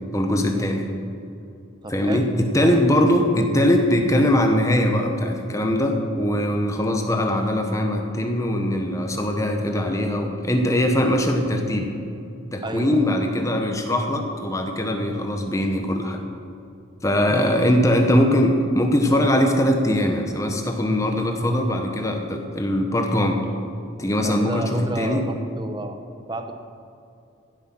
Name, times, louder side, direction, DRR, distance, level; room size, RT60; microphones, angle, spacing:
voice 1, 0.1-0.9 1.9-11.9 12.5-16.2 17.0-23.4 24.0-25.2, left 1 dB, 15° left, 4 dB, 1.1 m, -21 dB
voice 2, 1.8-2.8 12.6-13.1 13.4-13.5 17.1-17.7 18.0-18.1 24.2-26.0 26.3-26.5, right 1 dB, 20° right, 6 dB, 0.8 m, -32 dB
15.5 x 8.0 x 6.1 m, 2.6 s
head